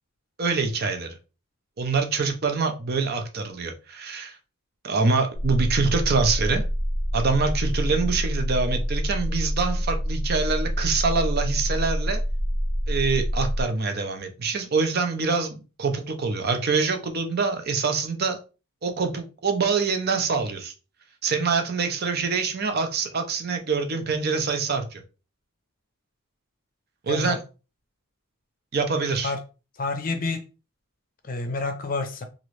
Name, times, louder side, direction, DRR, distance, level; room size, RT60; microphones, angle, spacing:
voice 1, 0.4-1.1 1.8-4.4 4.8-6.7 7.1-12.2 12.9-18.4 18.8-20.7 21.2-25.0 27.0-27.4 28.7-29.3, right 4 dB, 45° right, 0.5 m, -25 dB
sound 1, 5.3-13.6, equal, 70° right, 1.0 m, -26 dB
voice 2, 27.1-27.4 29.2-29.4 29.7-30.4 31.2-32.2, left 3 dB, 40° left, 0.6 m, -29 dB
3.0 x 2.5 x 3.1 m
head